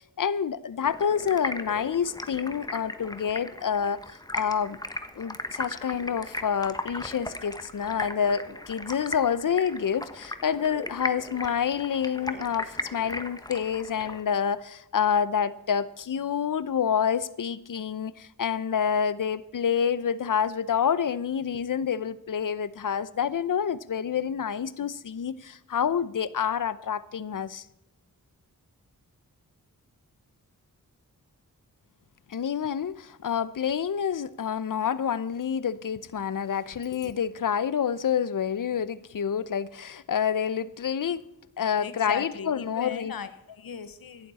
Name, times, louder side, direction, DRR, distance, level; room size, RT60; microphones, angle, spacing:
voice 1, 0.0-4.8 5.1-27.6 32.3-41.2 41.6-43.1, left 7 dB, 65° left, 17 dB, 0.9 m, -28 dB
Stream, 0.8-14.2, left 1 dB, 10° left, 1.3 m, -37 dB
voice 2, 41.8-44.3, left 7 dB, 90° left, 12 dB, 1.3 m, -37 dB
17.0 x 12.0 x 4.3 m, 0.83 s
wide cardioid pair, 75°, 34 cm